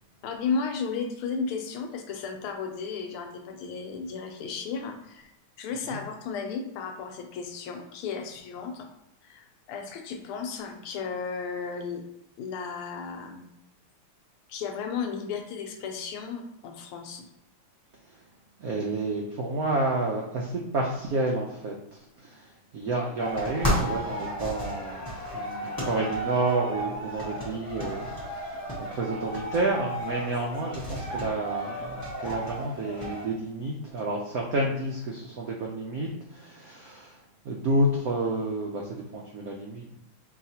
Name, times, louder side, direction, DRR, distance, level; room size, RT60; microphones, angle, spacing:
voice 1, 0.2-5.3 5.6-8.9 9.2-12.0 12.4-13.4 14.5-17.3, left 5 dB, 80° left, 4 dB, 1.5 m, -34 dB
voice 2, 18.6-22.5 22.7-37.2 37.4-40.0, right 2 dB, 90° right, -1 dB, 0.8 m, -30 dB
sound 1, 23.2-33.2, equal, 20° left, 0.5 m, -33 dB
4.8 x 3.2 x 2.8 m, 0.85 s
omnidirectional pair, 2.4 m